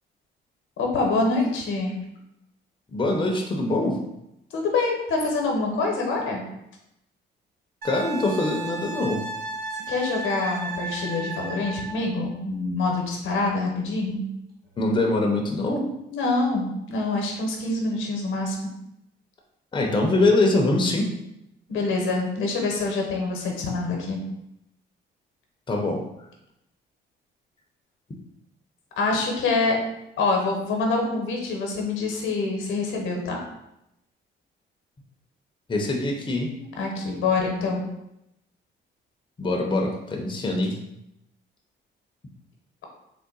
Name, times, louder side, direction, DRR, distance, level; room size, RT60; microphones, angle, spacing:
voice 1, 0.8-1.9 4.5-6.4 9.7-14.2 16.1-18.7 21.7-24.2 29.0-29.8 30.2-33.4 36.6-37.8, left 3 dB, 80° left, 1 dB, 0.9 m, -25 dB
voice 2, 2.9-4.0 7.8-9.2 14.8-15.9 19.7-21.1 25.7-26.0 35.7-36.5 39.4-40.8, left 2 dB, 25° left, 1 dB, 0.6 m, -23 dB
Wind instrument woodwind instrument, 7.8-12.1 14.7-14.9, right 2 dB, 50° right, 1.0 m, -34 dB
3.7 x 2.1 x 3.9 m, 0.84 s
cardioid pair, 90°, 20 cm